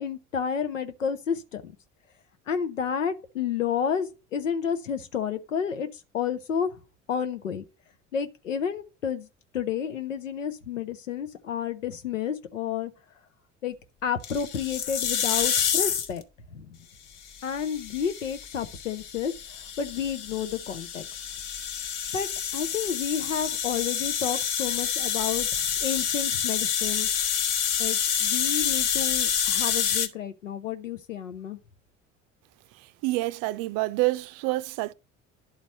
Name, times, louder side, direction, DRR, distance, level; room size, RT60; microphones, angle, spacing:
voice 1, 0.0-1.7 2.5-5.9 6.1-6.8 7.1-7.6 8.1-9.3 9.5-12.9 13.6-13.8 14.0-16.2 16.5-16.8 17.4-21.1 22.1-22.3 22.5-25.5 25.8-27.1 27.8-31.6, left 8 dB, 85° left, 0.8 m, -30 dB
sound 1, 14.2-16.2 17.3-30.1, left 8 dB, 55° left, 1.1 m, -28 dB
voice 2, 33.0-34.9, right 20 dB, 60° right, 0.5 m, -27 dB
11.0 x 4.0 x 4.2 m
figure-of-eight pair, 60°, 37 cm